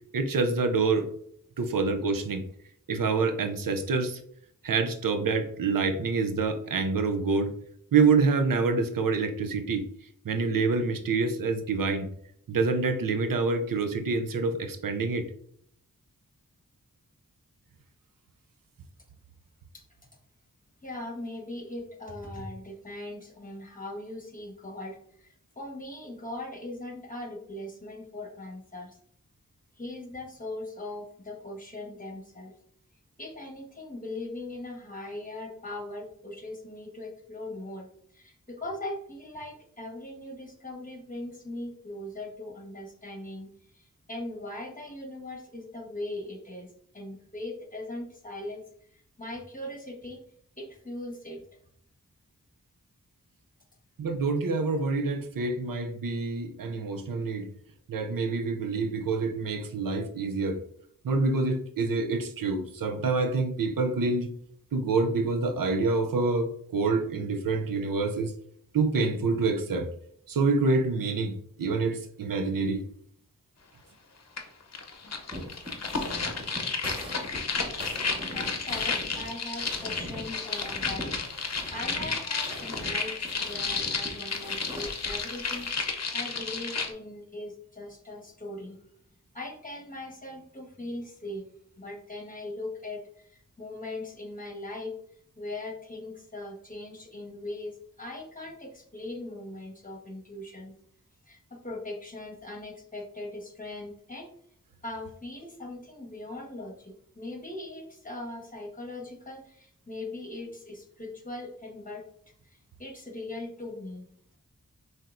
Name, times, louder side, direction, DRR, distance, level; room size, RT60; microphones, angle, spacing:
voice 1, 0.1-1.1 1.6-2.5 2.9-4.2 4.6-7.5 7.9-9.9 10.2-12.1 12.5-15.2 54.0-57.5 57.9-60.6 61.0-64.3 64.7-68.3 68.7-69.9 70.3-72.8, right 4 dB, 90° right, 6 dB, 0.6 m, -27 dB
voice 2, 20.8-29.0 29.8-32.5 33.2-48.6 48.9-50.2 50.6-51.4 77.9-85.7 86.1-88.9 89.3-91.4 91.8-94.9 95.4-100.7 101.2-104.3 104.8-112.0 112.4-114.1, left 2 dB, 25° left, 0 dB, 1.4 m, -40 dB
sound 1, 74.4-74.5 74.7-86.9, left 4 dB, 50° left, 0.8 m, -32 dB
sound 2, 75.3-85.7, equal, 15° right, 1.4 m, -42 dB
5.7 x 3.3 x 2.5 m, 0.66 s
wide cardioid pair, 60°, 32 cm